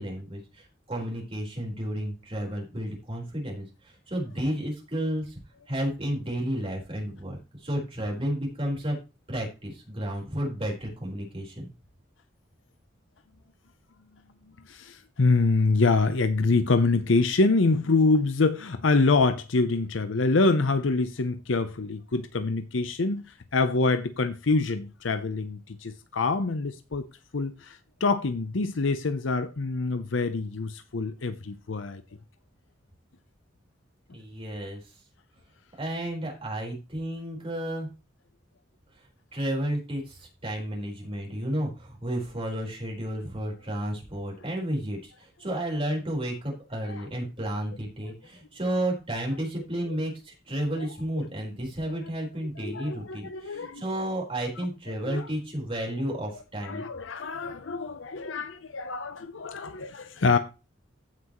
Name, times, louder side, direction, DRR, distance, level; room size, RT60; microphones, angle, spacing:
voice 1, 0.0-3.7 4.1-5.3 5.7-9.0 9.3-11.7 34.1-34.8 35.8-37.9 39.3-56.8, right 1 dB, 30° right, 4.4 m, -32 dB
voice 2, 14.7-23.2 23.5-27.1 27.3-32.0 46.8-47.1 49.8-50.0 50.8-50.9 51.9-52.0 52.6-53.8 54.6-54.7 55.0-55.3 56.6-60.4, left 3 dB, 85° left, 0.7 m, -25 dB
15.0 x 6.0 x 3.1 m
head